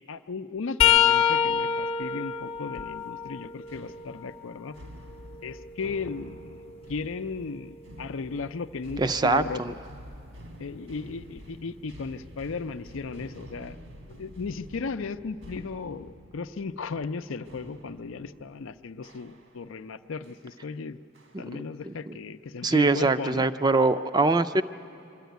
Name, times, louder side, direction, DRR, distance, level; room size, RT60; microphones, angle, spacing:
voice 1, 0.1-4.8 5.4-9.8 10.6-13.8 14.1-21.0 21.4-23.5, left 4 dB, 85° left, 11 dB, 0.5 m, -36 dB
sound 1, 0.8-4.6 5.1-7.0 9.9-10.1 11.4-11.5 12.9-13.0, left 8 dB, 30° left, 0.6 m, -27 dB
sound 2, 3.5-19.8 20.2-20.5 21.2-21.7, equal, 75° right, 1.6 m, -48 dB
voice 2, 9.0-9.7 21.9-22.2 22.6-24.6, right 3 dB, 20° right, 12 dB, 0.4 m, -23 dB
24.0 x 13.0 x 9.2 m, 2.6 s
head